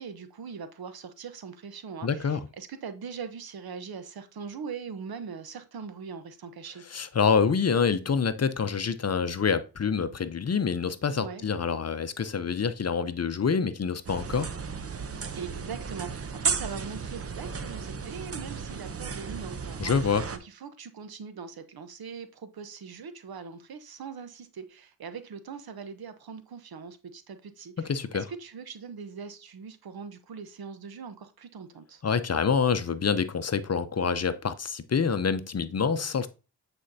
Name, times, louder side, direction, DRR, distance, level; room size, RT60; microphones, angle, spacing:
voice 1, 0.0-6.8 11.1-11.5 15.4-32.0, right 6 dB, 65° right, 1.0 m, -41 dB
voice 2, 2.0-2.4 6.9-14.5 19.8-20.3 27.8-28.2 32.0-36.3, left 6 dB, 40° left, 0.7 m, -26 dB
sound 1, 14.0-20.4, right 5 dB, 35° right, 0.8 m, -34 dB
8.5 x 4.4 x 2.7 m
cardioid pair, 50°, 40 cm